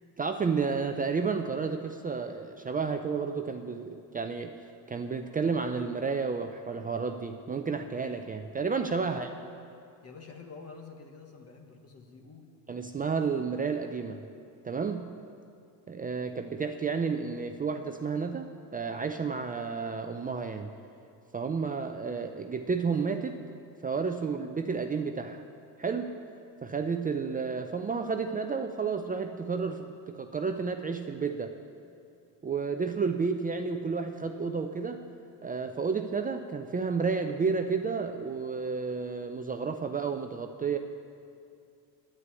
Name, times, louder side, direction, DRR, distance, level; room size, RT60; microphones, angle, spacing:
voice 1, 0.2-4.6 4.9-9.3 12.7-14.2 14.6-15.1 15.9-20.7 21.3-23.4 23.8-25.4 25.8-26.1 26.6-31.5 32.4-35.0 35.4-40.8, right 5 dB, 20° right, 6 dB, 0.5 m, -31 dB
voice 2, 10.0-12.5, left 4 dB, 35° left, 3 dB, 1.5 m, -48 dB
9.9 x 9.6 x 8.3 m, 2.4 s
cardioid pair, 100°, 40 cm